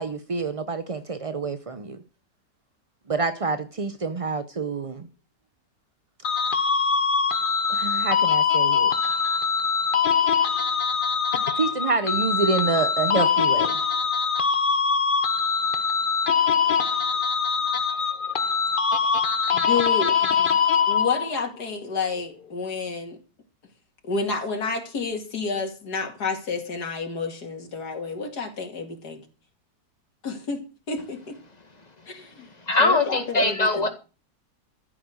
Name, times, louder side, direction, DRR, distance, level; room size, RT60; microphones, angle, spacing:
voice 1, 0.0-2.0 3.1-5.1 7.7-8.9 11.5-13.7, right 4 dB, 55° right, 0.3 m, -27 dB
sound 1, 6.2-21.5, left 6 dB, 40° left, 0.9 m, -23 dB
voice 2, 19.5-20.5 20.8-23.2 24.0-29.2 30.2-30.6 30.9-31.4 32.1-32.5 32.8-33.9, left 4 dB, 65° left, 2.9 m, -30 dB
voice 3, 32.6-33.9, left 2 dB, 25° left, 2.0 m, -21 dB
14.0 x 7.6 x 6.4 m
omnidirectional pair, 1.8 m